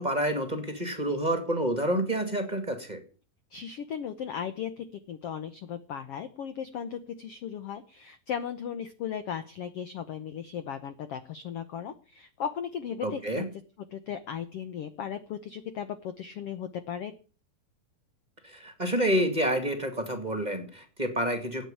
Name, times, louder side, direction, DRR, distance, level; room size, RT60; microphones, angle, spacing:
voice 1, 0.0-3.0 13.0-13.4 18.4-21.7, right 1 dB, 15° right, 8 dB, 1.5 m, -28 dB
voice 2, 3.5-13.5 13.9-17.1, left 8 dB, 80° left, 11 dB, 1.3 m, -36 dB
13.0 x 9.1 x 8.5 m, 0.38 s
omnidirectional pair, 4.0 m